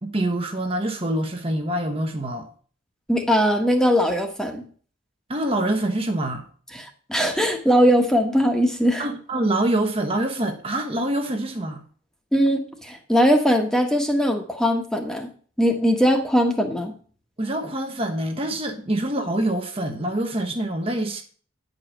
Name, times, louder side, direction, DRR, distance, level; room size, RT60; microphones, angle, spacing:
voice 1, 0.0-2.5 5.3-6.4 9.0-11.8 17.4-21.2, right 1 dB, 30° right, 1.1 m, -25 dB
voice 2, 3.1-4.6 6.7-9.1 12.3-15.3 15.6-16.9, equal, 5° left, 1.3 m, -20 dB
10.5 x 5.2 x 7.3 m
head